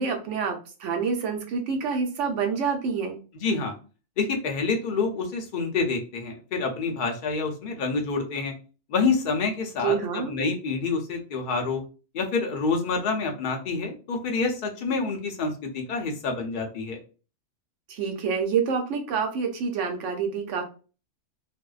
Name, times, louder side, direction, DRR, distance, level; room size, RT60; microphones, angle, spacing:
voice 1, 0.0-3.2 9.8-10.3 17.9-20.6, right 6 dB, 90° right, 4 dB, 1.0 m, -27 dB
voice 2, 3.3-3.8 4.2-8.5 8.9-11.8 12.1-17.0, left 4 dB, 55° left, 3 dB, 0.6 m, -27 dB
2.5 x 2.1 x 2.3 m, 0.35 s
omnidirectional pair, 1.2 m